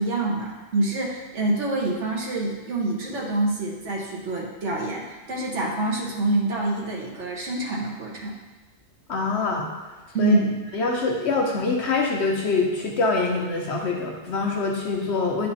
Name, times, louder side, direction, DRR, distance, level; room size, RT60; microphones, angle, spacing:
voice 1, 0.0-8.4 10.1-10.6, right 2 dB, 75° right, -3 dB, 1.6 m, -26 dB
voice 2, 9.1-9.7 10.2-10.4 10.7-15.5, left 3 dB, 70° left, 0 dB, 1.2 m, -24 dB
9.7 x 4.2 x 4.2 m, 1.2 s
omnidirectional pair, 1.2 m